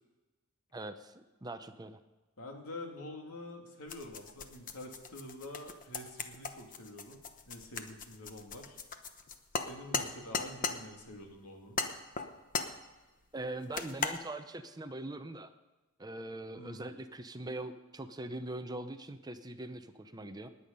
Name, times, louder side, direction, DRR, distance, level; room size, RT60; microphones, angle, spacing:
voice 1, 0.7-2.0 13.3-15.5 16.0-20.5, right 2 dB, 20° right, 9 dB, 0.6 m, -42 dB
voice 2, 2.4-8.8 9.5-11.8 16.5-16.9, left 1 dB, 75° left, 2 dB, 2.6 m, -47 dB
sound 1, 3.9-10.8 11.8-12.8 13.7-14.2, left 5 dB, 35° left, 1.0 m, -37 dB
19.5 x 8.6 x 5.3 m, 1.1 s
head